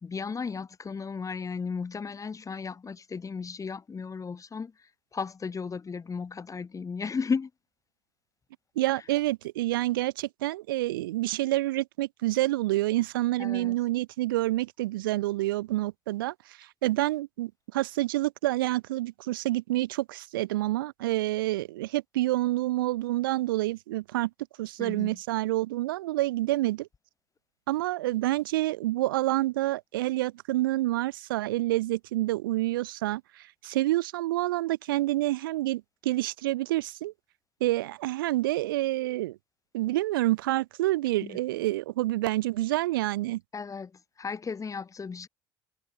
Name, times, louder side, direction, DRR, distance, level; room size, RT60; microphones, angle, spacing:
voice 1, 0.0-4.7 5.1-7.5 13.4-13.7 24.8-25.2 41.2-41.4 43.5-43.9 44.2-45.3, left 5 dB, 30° left, 4.5 m, -34 dB
voice 2, 8.7-24.3 24.6-26.9 27.7-37.1 37.6-39.4 39.7-43.4, right 17 dB, 80° right, 1.4 m, -28 dB
hypercardioid pair, 70°, 11 cm